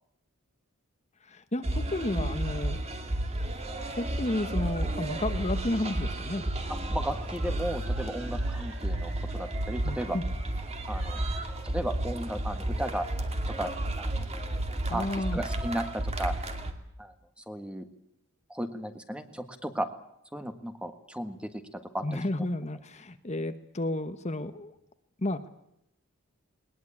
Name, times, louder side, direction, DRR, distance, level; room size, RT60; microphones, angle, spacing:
voice 1, 1.2-2.8 4.0-6.4 9.8-10.2 14.9-15.4 22.0-24.7 25.2-25.5, left 1 dB, 30° left, 9 dB, 1.2 m, -32 dB
sound 1, 1.6-16.7, right 1 dB, 30° right, 2.2 m, -32 dB
sound 2, 6.0-11.5, right 3 dB, 65° right, 4.6 m, -51 dB
voice 2, 6.9-10.2 10.9-11.2 11.6-13.1 13.6-13.7 14.0-14.3 14.9-16.3 17.0-17.1 17.5-17.9 18.5-19.9 20.3-22.2, right 1 dB, 5° right, 8 dB, 1.5 m, -35 dB
20.5 x 20.0 x 8.8 m, 0.77 s
head